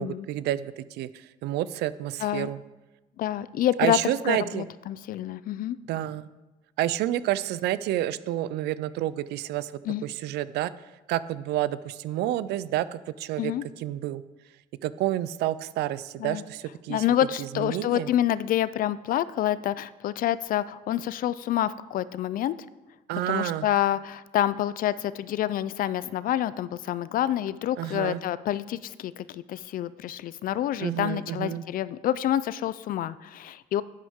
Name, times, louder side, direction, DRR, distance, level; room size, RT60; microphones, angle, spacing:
voice 1, 0.0-2.6 3.8-4.7 5.9-6.3 6.8-9.7 10.0-10.7 11.1-13.5 13.8-14.2 14.8-17.0 17.4-18.1 23.1-23.7 27.8-28.2 30.8-31.6, right 13 dB, 80° right, 17 dB, 0.4 m, -29 dB
voice 2, 2.2-2.5 3.2-4.0 4.2-5.8 9.9-10.0 13.4-13.6 16.2-16.4 16.9-22.5 23.3-33.8, left 12 dB, 55° left, 17 dB, 0.4 m, -27 dB
10.5 x 8.6 x 3.6 m, 1.1 s
cardioid pair, 110°, 17 cm